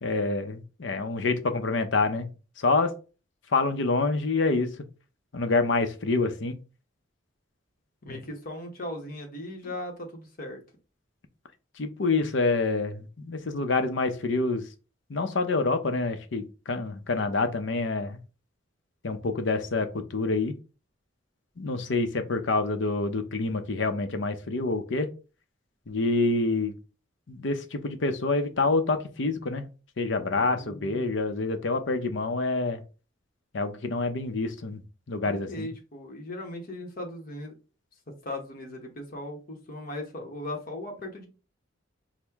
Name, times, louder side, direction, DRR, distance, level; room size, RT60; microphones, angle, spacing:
voice 1, 0.0-2.3 2.6-2.9 3.5-4.7 5.3-6.6 8.1-8.2 11.8-14.7 15.1-18.2 19.0-20.5 21.6-25.1 25.9-26.8 27.3-29.7 30.0-32.8 33.5-34.8 35.1-35.7, left 3 dB, 70° left, 9 dB, 0.7 m, -27 dB
voice 2, 8.0-10.6 30.3-31.1 35.2-37.5 38.2-41.3, left 1 dB, 50° left, 2 dB, 1.0 m, -38 dB
6.1 x 2.2 x 3.4 m, 0.33 s
head